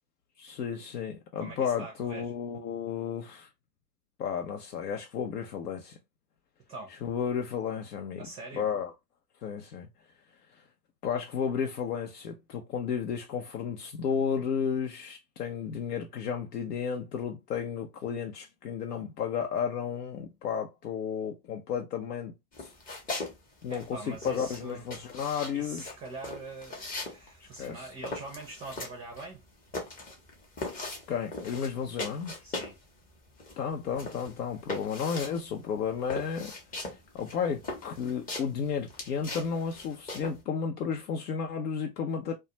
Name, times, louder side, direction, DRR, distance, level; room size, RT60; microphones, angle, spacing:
voice 1, 0.4-3.5 4.2-6.0 7.0-8.3 8.5-8.9 9.4-9.9 11.0-22.7 23.1-23.2 23.6-25.9 27.6-27.9 31.1-32.3 33.6-36.5 36.9-42.3, left 7 dB, 70° left, 0.7 m, -33 dB
voice 2, 1.4-2.3 6.7-7.0 8.2-8.7 23.7-24.8 25.5-29.4 32.4-32.8, right 2 dB, 15° right, 0.5 m, -43 dB
sound 1, 22.5-23.4 23.6-32.8 33.1-40.4, left 2 dB, 15° left, 0.7 m, -39 dB
2.3 x 2.2 x 2.8 m
hypercardioid pair, 110°, 49 cm